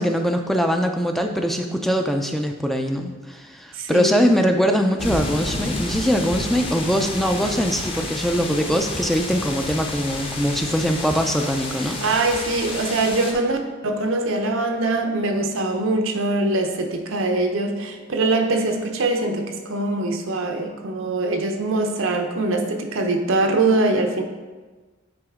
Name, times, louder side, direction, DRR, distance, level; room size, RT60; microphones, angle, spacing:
voice 1, 0.0-12.0, equal, ahead, 4 dB, 0.4 m, -22 dB
voice 2, 3.7-4.2 12.0-13.6 13.8-24.2, right 2 dB, 85° right, 4 dB, 0.8 m, -23 dB
sound 1, 5.0-13.3, left 2 dB, 30° left, 0.8 m, -30 dB
8.8 x 4.2 x 3.6 m, 1.3 s
head